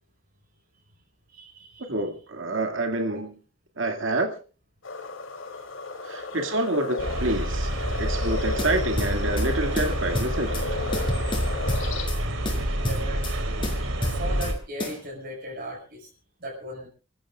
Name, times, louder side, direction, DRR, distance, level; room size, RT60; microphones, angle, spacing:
voice 1, 1.3-1.9 3.0-3.2 12.8-13.4 14.0-16.1 16.4-16.9, right 1 dB, 50° right, 6.1 m, -37 dB
voice 2, 1.9-3.3 3.8-4.3 6.0-7.7 8.0-10.6, right 2 dB, 70° right, 2.4 m, -27 dB
sound 1, 4.8-12.1, left 3 dB, 85° left, 3.3 m, -34 dB
sound 2, 7.0-14.5, right 1 dB, 90° right, 3.4 m, -28 dB
sound 3, 8.6-9.5 9.8-10.7 10.9-12.2 12.5-13.4 13.6-14.5 14.8-15.0, left 1 dB, 25° left, 4.7 m, -31 dB
29.5 x 14.5 x 2.5 m
head